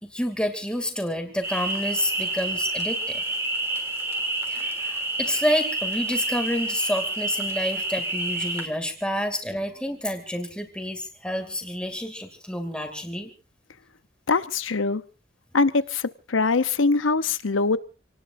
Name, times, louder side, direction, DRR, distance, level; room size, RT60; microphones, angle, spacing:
voice 1, 0.0-3.2 4.5-13.3, equal, 5° left, 5 dB, 2.5 m, -29 dB
sound 1, 1.4-8.7, right 2 dB, 15° right, 2.9 m, -28 dB
voice 2, 14.3-15.0 15.5-17.8, left 4 dB, 90° left, 13 dB, 0.8 m, -23 dB
27.5 x 19.0 x 2.6 m, 0.33 s
head